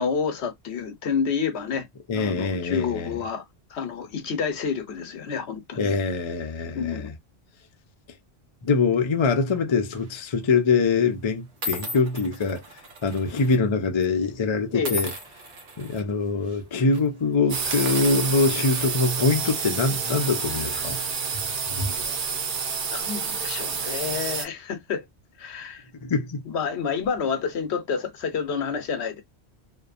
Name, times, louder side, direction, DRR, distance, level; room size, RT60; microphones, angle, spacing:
voice 1, 0.0-1.9 2.1-3.4 3.7-5.9 6.7-7.1 14.7-15.0 21.8-22.2 22.9-25.0 25.4-25.8 26.5-29.2, left 6 dB, 85° left, 1.0 m, -29 dB
voice 2, 2.1-3.2 5.8-7.1 8.6-12.6 13.0-15.1 15.8-21.0 21.3-21.4 21.8-21.9 26.0-26.4, left 4 dB, 40° left, 0.4 m, -24 dB
sound 1, 9.9-10.2 11.0-11.1 11.6-13.6 13.8-14.0 14.8-16.0 16.4-16.6 16.9-17.1 17.6-19.1, equal, 80° right, 1.1 m, -36 dB
sound 2, 17.5-24.4, right 5 dB, 55° right, 0.7 m, -29 dB
2.8 x 2.1 x 2.4 m
omnidirectional pair, 1.1 m